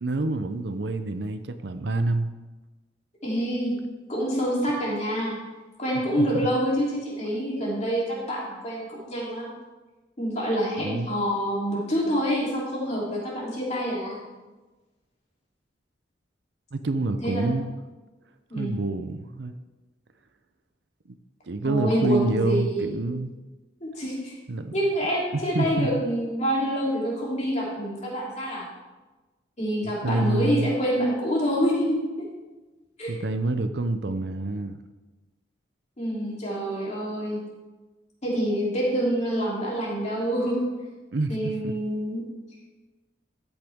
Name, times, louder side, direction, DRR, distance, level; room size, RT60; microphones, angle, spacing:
voice 1, 0.0-2.3 6.2-6.5 10.8-11.1 16.7-17.7 18.5-19.5 21.1-21.2 21.4-23.4 24.5-24.7 25.3-25.9 29.8-30.7 33.1-34.8 41.1-41.4 41.6-41.7, right 2 dB, 60° right, 9 dB, 0.6 m, -27 dB
voice 2, 3.2-3.8 4.1-5.4 5.8-9.5 10.2-14.2 17.2-17.7 18.5-18.7 21.6-22.8 23.8-24.3 24.7-28.7 29.6-32.3 33.0-33.1 36.0-37.4 38.2-40.6 41.3-42.2, equal, 35° left, -5 dB, 3.3 m, -27 dB
13.5 x 8.8 x 3.6 m, 1.2 s
head